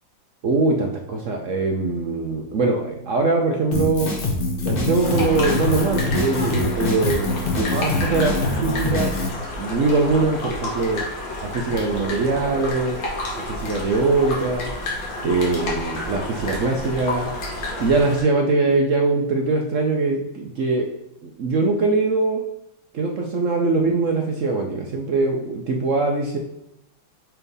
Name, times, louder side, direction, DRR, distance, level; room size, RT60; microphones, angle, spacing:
voice 1, 0.4-4.1 4.6-9.1 9.6-11.0 11.5-13.0 13.5-14.7 15.2-17.3 17.8-20.9 21.2-22.4 22.9-26.4, right 3 dB, 60° right, 2 dB, 0.8 m, -22 dB
Drum kit, 3.7-9.3, left 2 dB, 40° left, 0.9 m, -24 dB
sound 1, 5.0-18.2, left 1 dB, 75° left, 2.2 m, -30 dB
5.9 x 3.4 x 5.4 m, 0.84 s
omnidirectional pair, 2.1 m